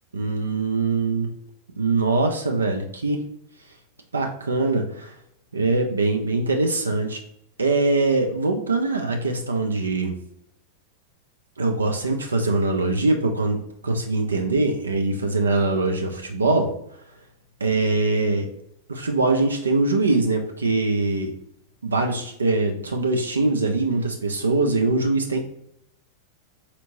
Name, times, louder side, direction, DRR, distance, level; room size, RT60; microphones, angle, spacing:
voice 1, 0.1-1.3 1.8-3.2 4.1-5.1 5.5-7.2 7.6-10.2 11.6-16.7 17.6-18.5 18.9-21.3 21.8-25.4, right 3 dB, 75° right, 3 dB, 0.4 m, -22 dB
4.3 x 2.9 x 2.6 m, 0.73 s
figure-of-eight pair, 90°, 0 cm